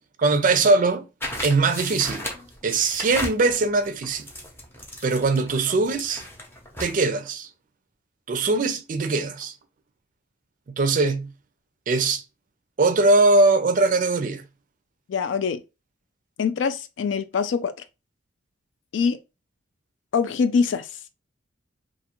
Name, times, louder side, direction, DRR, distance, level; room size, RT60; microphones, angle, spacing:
voice 1, 0.2-1.1 1.4-2.3 2.6-4.3 5.0-6.2 6.8-7.5 8.3-9.5 10.8-11.3 11.9-12.2 12.8-14.4, right 3 dB, 45° right, 0.4 m, -21 dB
sound 1, 1.2-7.0, left 1 dB, 10° left, 0.6 m, -36 dB
voice 2, 15.1-15.6 16.4-17.7 18.9-19.2 20.1-20.9, left 5 dB, 70° left, 0.3 m, -23 dB
2.5 x 2.4 x 2.9 m
head